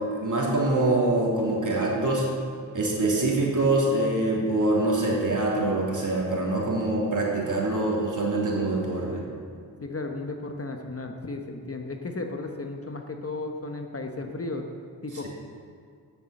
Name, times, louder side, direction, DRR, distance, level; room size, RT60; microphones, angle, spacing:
voice 1, 0.0-2.3 2.7-9.2, right 2 dB, 45° right, -3 dB, 3.1 m, -24 dB
voice 2, 9.8-14.6 15.0-15.3, left 3 dB, 30° left, 4 dB, 1.1 m, -34 dB
9.2 x 6.9 x 7.7 m, 2.2 s
supercardioid pair, 45°, 44 cm